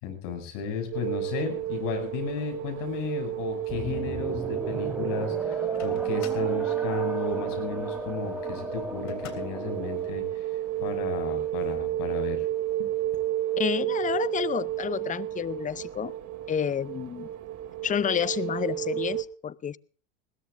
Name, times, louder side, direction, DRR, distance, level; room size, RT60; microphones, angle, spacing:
voice 1, 0.0-10.5 10.8-12.5 12.8-12.9, left 6 dB, 65° left, 7.2 m, -34 dB
sound 1, 0.9-19.2, right 13 dB, 45° right, 2.8 m, -31 dB
sound 2, 3.7-10.2, right 1 dB, 5° right, 4.3 m, -36 dB
Microwave oven, 5.5-6.6 9.1-9.7, left 9 dB, 40° left, 3.4 m, -47 dB
voice 2, 13.6-16.1 16.5-17.3 17.8-19.8, left 8 dB, 20° left, 0.7 m, -29 dB
21.0 x 19.0 x 2.6 m
hypercardioid pair, 75°, 42 cm